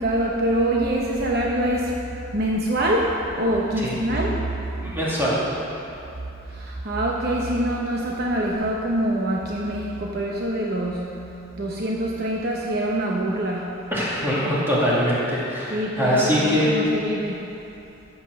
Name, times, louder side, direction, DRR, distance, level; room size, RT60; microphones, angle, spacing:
voice 1, 0.0-5.0 6.4-11.2 11.6-13.8 15.7-17.5, right 1 dB, 50° right, -2 dB, 0.9 m, -25 dB
voice 2, 4.8-5.4 13.9-16.8, equal, 10° right, -8 dB, 2.5 m, -22 dB
14.5 x 5.9 x 6.5 m, 2.8 s
head